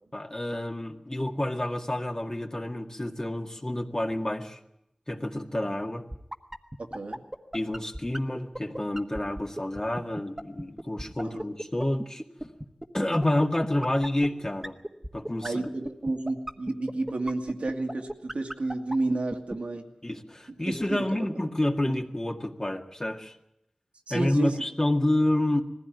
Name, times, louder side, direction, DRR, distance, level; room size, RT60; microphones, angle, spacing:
voice 1, 0.1-4.6 5.1-6.0 7.5-12.2 12.9-14.8 15.1-15.7 20.0-23.3 24.1-25.6, left 1 dB, 30° left, 3 dB, 1.9 m, -28 dB
sound 1, 6.1-19.5, right 1 dB, 15° right, 1.4 m, -34 dB
voice 2, 6.8-7.2 11.2-11.4 15.4-19.9 20.7-21.0 21.8-21.9 24.1-24.5, right 2 dB, 85° right, 2 dB, 2.1 m, -31 dB
20.0 x 15.5 x 9.1 m, 0.83 s
wide cardioid pair, 50°, 2 cm